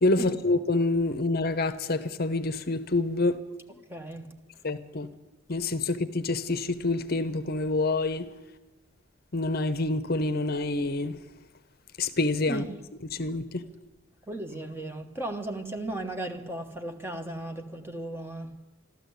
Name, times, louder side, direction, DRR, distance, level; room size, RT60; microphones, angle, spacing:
voice 1, 0.0-3.4 4.6-5.1 5.5-8.3 9.3-11.2 12.0-12.6 13.1-13.6, left 2 dB, 50° left, 0.8 m, -27 dB
voice 2, 3.9-4.3 12.5-12.8 14.3-18.6, right 1 dB, 10° right, 1.2 m, -36 dB
13.0 x 13.0 x 8.1 m
head